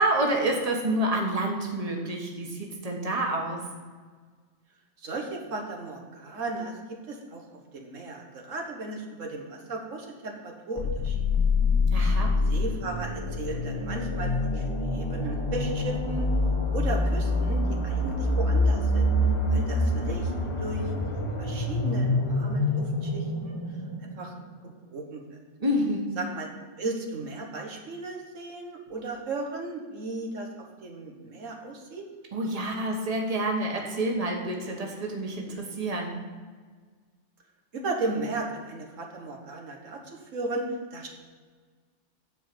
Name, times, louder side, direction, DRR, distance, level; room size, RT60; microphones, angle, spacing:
voice 1, 0.0-3.6 11.9-12.4 25.6-26.1 32.3-36.2, right 1 dB, 30° right, 0 dB, 1.4 m, -28 dB
voice 2, 5.0-7.4 7.7-11.2 12.5-16.3 16.7-19.1 19.5-23.6 24.2-24.3 24.6-25.4 26.2-26.5 26.8-32.1 37.7-41.1, right 2 dB, 90° right, 1 dB, 1.7 m, -35 dB
sound 1, 10.8-24.5, left 2 dB, 25° left, 1.0 m, -26 dB
9.7 x 4.9 x 7.7 m, 1.5 s
omnidirectional pair, 1.3 m